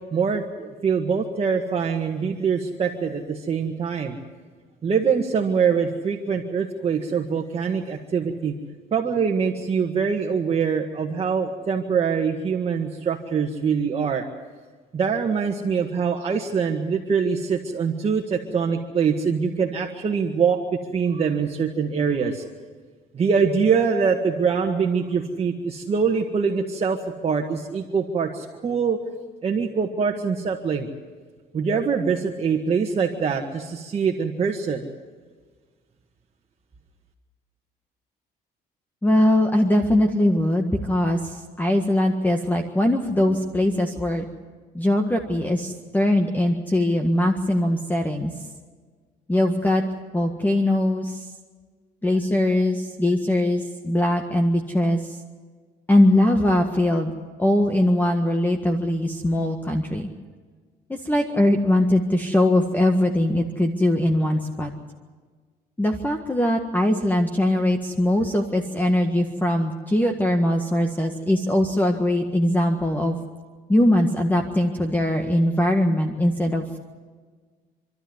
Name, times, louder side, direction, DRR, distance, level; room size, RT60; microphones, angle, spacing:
voice 1, 0.1-4.2 4.8-8.6 8.9-14.2 14.9-20.6 20.9-22.4 23.1-29.0 29.4-30.9 31.5-34.9, right 6 dB, 35° right, 1 dB, 1.8 m, -24 dB
voice 2, 39.0-44.3 44.7-48.5 49.3-49.8 50.1-51.3 52.0-55.2 55.9-57.1 57.4-60.1 60.9-64.7 65.8-73.2 73.7-76.8, left 1 dB, 10° left, 4 dB, 1.7 m, -21 dB
27.0 x 12.5 x 9.6 m, 1.5 s
cardioid pair, 110°, 17 cm